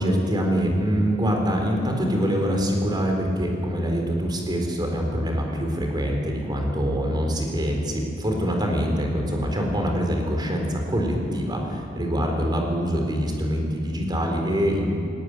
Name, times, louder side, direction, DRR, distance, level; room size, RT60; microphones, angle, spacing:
voice 1, 0.0-14.9, equal, 25° right, 2 dB, 3.9 m, -24 dB
20.0 x 18.0 x 9.5 m, 2.6 s
head